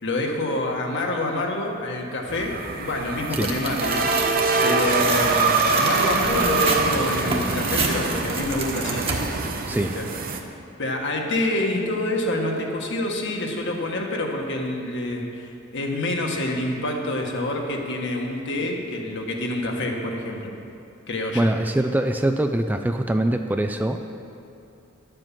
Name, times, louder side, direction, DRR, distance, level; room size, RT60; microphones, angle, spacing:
voice 1, 0.0-9.0 9.8-10.1 10.8-20.5 21.1-21.5, left 1 dB, 60° left, 1 dB, 1.6 m, -27 dB
sound 1, 2.3-10.4, right 3 dB, 45° right, 0.8 m, -24 dB
Tearing, 3.3-9.5, right 4 dB, 25° right, 1.3 m, -29 dB
voice 2, 21.3-24.2, right 1 dB, 10° right, 6 dB, 0.3 m, -23 dB
11.0 x 7.7 x 7.5 m, 2.6 s
head